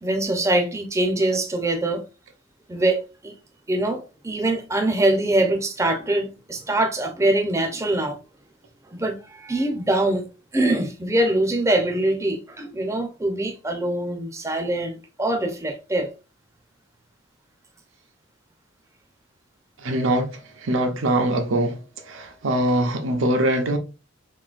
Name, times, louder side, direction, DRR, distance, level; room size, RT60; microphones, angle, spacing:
voice 1, 0.0-2.0 2.7-3.3 3.7-8.2 8.9-10.3 10.5-16.1, right 1 dB, 15° right, 0.5 m, -23 dB
voice 2, 19.8-20.3 20.6-21.8 22.1-23.8, right 1 dB, 75° right, 0.7 m, -22 dB
3.8 x 2.7 x 2.4 m
head